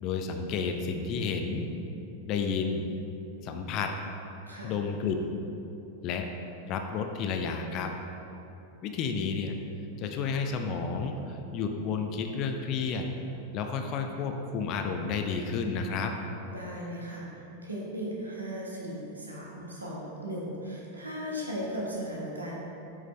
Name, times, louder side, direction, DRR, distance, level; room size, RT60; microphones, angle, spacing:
voice 1, 0.0-1.7 2.3-2.9 3.4-3.9 4.6-5.4 6.0-6.3 6.7-7.9 8.8-9.5 10.0-13.1 13.5-16.1, left 5 dB, 40° left, 5 dB, 0.6 m, -31 dB
voice 2, 4.5-4.8 16.5-22.6, equal, 75° right, -4 dB, 1.2 m, -37 dB
8.3 x 5.0 x 3.2 m, 2.9 s
figure-of-eight pair, 90°, 0 cm